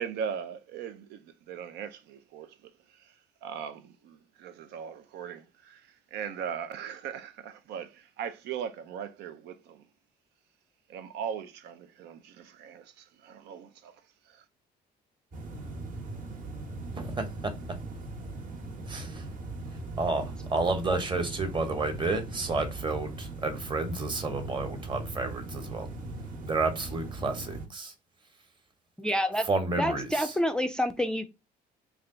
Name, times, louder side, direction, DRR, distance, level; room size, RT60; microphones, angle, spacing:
voice 1, 0.0-2.5 3.0-3.1 3.4-9.8 10.9-14.0 14.3-14.4, right 8 dB, 80° right, 0.5 m, -39 dB
sound 1, 15.3-27.7, right 2 dB, 50° right, 1.1 m, -39 dB
voice 2, 17.0-17.5 18.9-19.3 20.0-25.9 26.4-27.9 29.5-30.3, right 3 dB, 30° right, 1.0 m, -31 dB
voice 3, 29.0-29.5 29.8-31.3, equal, 5° left, 0.4 m, -28 dB
3.3 x 2.3 x 3.8 m
cardioid pair, 110°, 17 cm